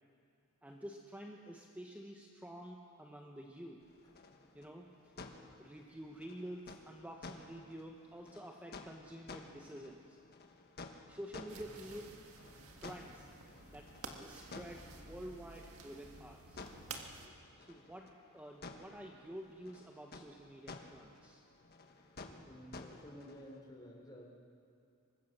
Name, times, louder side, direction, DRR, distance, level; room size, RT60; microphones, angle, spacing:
voice 1, 0.6-3.8 4.5-5.1 5.6-10.2 11.1-12.1 12.8-13.3 13.7-16.7 17.6-21.4, equal, 5° right, 0 dB, 1.2 m, -49 dB
sound 1, 3.8-23.6, left 3 dB, 45° left, 1.5 m, -54 dB
sound 2, 11.5-17.3, right 4 dB, 70° right, 1.9 m, -52 dB
voice 2, 22.3-24.3, equal, 20° left, -1 dB, 3.9 m, -53 dB
24.0 x 21.0 x 6.8 m, 2.5 s
head